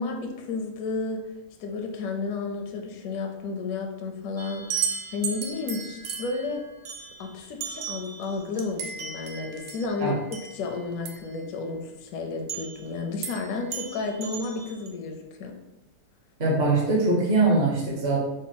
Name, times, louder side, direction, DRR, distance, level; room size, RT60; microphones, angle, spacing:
voice 1, 0.0-6.7 7.2-15.6, left 4 dB, 70° left, 3 dB, 0.9 m, -32 dB
sound 1, 4.4-11.3 12.5-12.9 13.2-13.5 13.7-14.9, right 7 dB, 70° right, 1.0 m, -35 dB
voice 2, 16.4-18.2, right 3 dB, 45° right, -4 dB, 1.1 m, -22 dB
4.0 x 2.1 x 3.9 m, 0.96 s
omnidirectional pair, 1.8 m